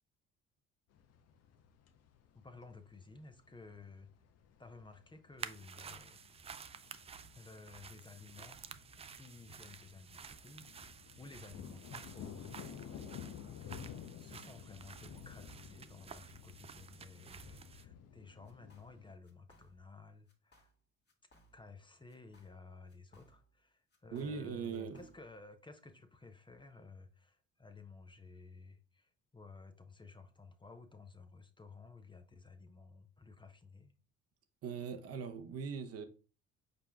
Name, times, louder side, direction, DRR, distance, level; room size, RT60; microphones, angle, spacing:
sound 1, 0.9-19.1, left 8 dB, 55° left, 0.7 m, -53 dB
voice 1, 2.4-4.1 4.6-6.2 7.3-8.6 9.1-13.8 14.2-20.7 21.5-34.0, left 4 dB, 15° left, 0.6 m, -55 dB
sound 2, 5.4-17.8, right 6 dB, 20° right, 0.3 m, -52 dB
sound 3, 18.4-19.0 19.2-20.0 20.3-20.8 21.1-21.8 22.1-23.6 23.9-25.4, equal, 35° left, 1.5 m, -68 dB
voice 2, 24.1-25.0 34.6-36.1, right 6 dB, 50° right, 0.7 m, -40 dB
5.1 x 4.4 x 2.3 m
hypercardioid pair, 65°, 31 cm